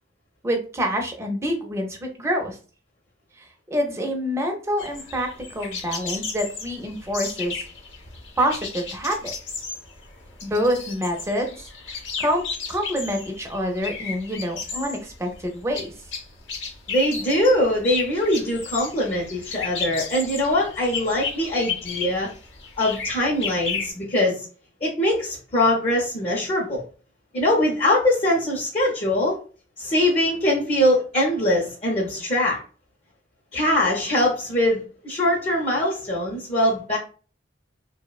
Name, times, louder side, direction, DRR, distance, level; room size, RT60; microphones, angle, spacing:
voice 1, 0.4-2.6 3.4-7.6 8.4-9.3 10.4-11.5 12.2-15.9, equal, 15° right, 2 dB, 0.5 m, -26 dB
sound 1, 4.8-23.9, left 5 dB, 75° left, 0.7 m, -34 dB
voice 2, 16.9-22.3 22.8-24.5 24.8-26.8 27.3-29.4 29.8-32.6 33.5-37.0, left 1 dB, 35° left, -4 dB, 0.5 m, -22 dB
2.9 x 2.0 x 2.3 m, 0.38 s
head